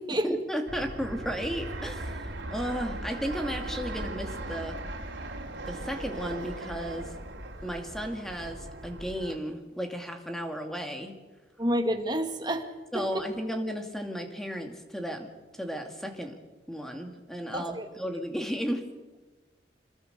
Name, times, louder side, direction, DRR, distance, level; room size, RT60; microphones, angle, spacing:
voice 1, 0.2-4.8 5.7-7.1 7.6-11.2 12.9-15.3 15.6-16.4 16.7-18.8, equal, ahead, 4 dB, 2.3 m, -34 dB
Fixed-wing aircraft airplane, 0.7-9.4, right 1 dB, 80° right, 3.5 m, -38 dB
voice 2, 11.6-12.6 12.9-13.1 17.5-17.9, equal, 25° right, 5 dB, 2.1 m, -28 dB
26.5 x 21.0 x 6.8 m, 1.2 s
head